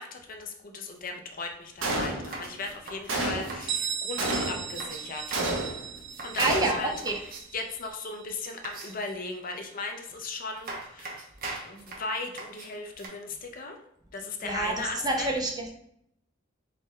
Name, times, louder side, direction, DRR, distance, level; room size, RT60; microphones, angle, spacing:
voice 1, 0.0-5.2 6.2-7.2 7.5-11.2 11.7-13.8 14.1-15.3, left 3 dB, 45° left, 4 dB, 0.5 m, -37 dB
sound 1, 0.9-1.0 1.3-1.4 1.8-3.8 4.2-5.6 6.0-6.5 7.0-7.7 8.6-9.2 10.1-10.2 10.6-13.1, right 2 dB, 45° right, 0.9 m, -42 dB
Gunshot gunfire, 1.8-2.5 3.1-3.7 4.2-4.8 5.3-6.0 6.4-7.0, right 2 dB, 85° right, 0.9 m, -30 dB
Bell, 3.7-9.2, right 8 dB, 65° right, 0.4 m, -37 dB
voice 2, 6.4-7.2 14.4-15.7, right 2 dB, 20° right, 1 dB, 0.7 m, -28 dB
4.1 x 3.7 x 3.2 m, 0.73 s
head